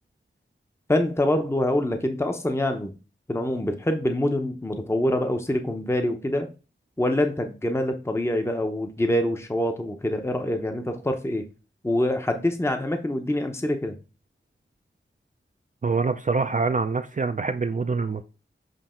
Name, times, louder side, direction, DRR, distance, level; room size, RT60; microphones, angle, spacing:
voice 1, 0.9-2.9 3.3-6.5 7.0-11.4 11.8-14.0, left 1 dB, 15° left, 0.7 m, -25 dB
voice 2, 15.8-18.2, right 4 dB, 40° right, 0.4 m, -25 dB
7.6 x 2.8 x 4.3 m
wide cardioid pair, 65°, 21 cm